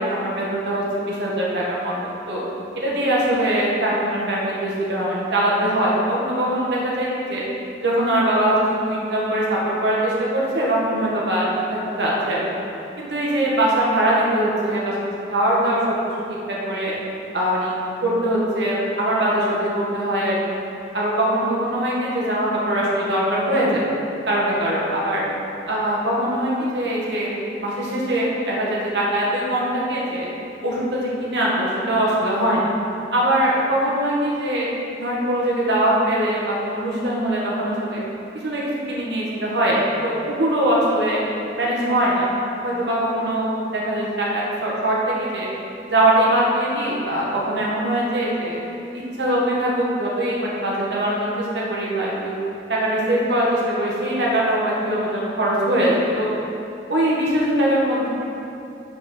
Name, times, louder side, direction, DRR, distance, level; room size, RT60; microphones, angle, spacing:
voice 1, 0.0-2.4 2.8-7.4 7.8-8.6 8.9-12.4 13.0-14.9 15.3-15.9 16.5-16.9 17.3-17.8 18.0-20.6 20.9-23.8 24.3-25.2 25.7-30.3 30.6-32.7 33.1-34.7 35.0-38.0 38.4-41.2 41.6-42.3 42.6-45.5 45.9-48.6 49.2-52.3 52.7-56.3 56.9-58.1, right 1 dB, 70° right, -5 dB, 1.9 m, -22 dB
8.1 x 5.0 x 6.3 m, 2.7 s
head